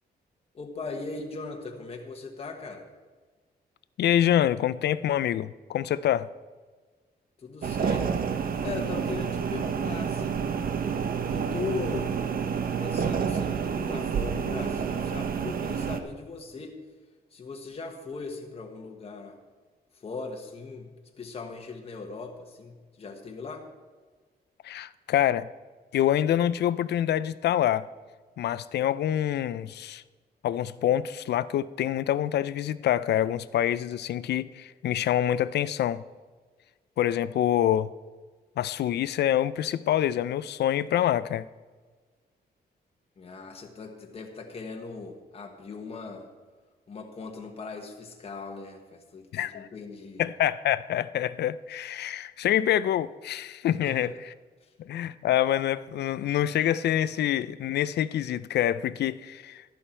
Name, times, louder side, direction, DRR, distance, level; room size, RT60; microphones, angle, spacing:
voice 1, 0.5-2.8 7.4-8.2 8.6-10.6 11.3-12.2 12.8-16.8 17.3-19.4 19.9-20.9 21.2-23.6 43.2-46.3 46.9-50.2 53.8-54.1, left 4 dB, 35° left, 2 dB, 1.2 m, -39 dB
voice 2, 4.0-6.3 24.6-25.5 25.9-27.9 28.4-30.0 30.4-36.0 37.0-37.9 38.6-41.5 49.3-49.7 50.2-54.3 54.8-59.6, left 11 dB, 85° left, 17 dB, 0.4 m, -26 dB
sound 1, 7.6-16.0, right 6 dB, 60° right, 0.8 m, -29 dB
12.0 x 11.0 x 4.4 m, 1.4 s
wide cardioid pair, 145°, 17 cm